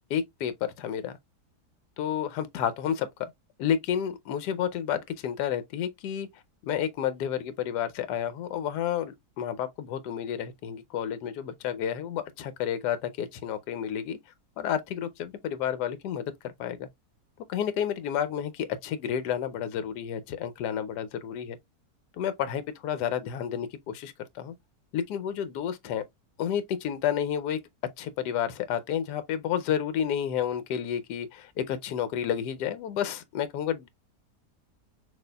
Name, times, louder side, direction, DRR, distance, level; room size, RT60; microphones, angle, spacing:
voice 1, 0.1-1.1 2.0-3.1 3.6-6.3 6.6-14.2 14.6-16.3 16.6-16.9 17.5-21.6 22.2-24.5 24.9-26.0 26.4-27.6 28.0-33.9, left 9 dB, 85° left, 1.2 m, -30 dB
6.1 x 2.6 x 2.2 m
omnidirectional pair, 1.7 m